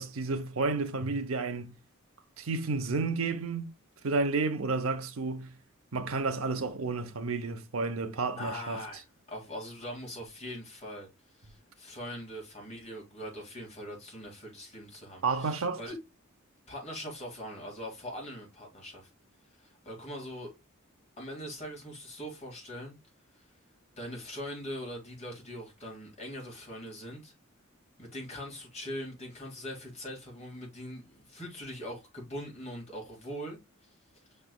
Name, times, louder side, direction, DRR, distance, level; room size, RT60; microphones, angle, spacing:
voice 1, 0.0-1.8 2.4-3.7 4.0-5.5 5.9-8.8 15.2-15.8, right 3 dB, 75° right, 0.7 m, -31 dB
voice 2, 8.4-16.0 16.7-19.1 19.6-20.5 21.2-23.0 23.3-23.4 24.0-27.3 28.0-33.9, equal, 35° left, 2.0 m, -42 dB
5.8 x 3.3 x 2.2 m
head